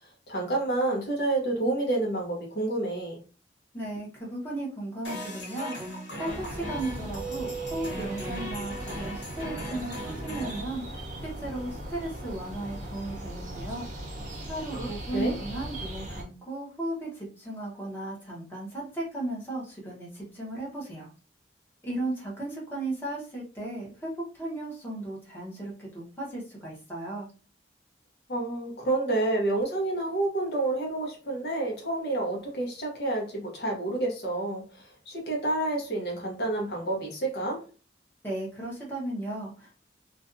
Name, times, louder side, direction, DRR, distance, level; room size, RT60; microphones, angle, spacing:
voice 1, 0.3-3.2 14.7-15.4 28.3-34.7 35.1-37.6, right 2 dB, 60° left, 0.8 m, -29 dB
voice 2, 3.7-5.8 6.2-13.9 14.5-21.1 21.8-24.1 24.4-27.3 38.2-39.8, right 1 dB, 10° left, 0.8 m, -35 dB
sound 1, 5.0-10.6, right 1 dB, 85° left, 1.2 m, -38 dB
sound 2, 6.3-16.2, right 1 dB, 45° right, 0.6 m, -39 dB
2.5 x 2.3 x 2.5 m
head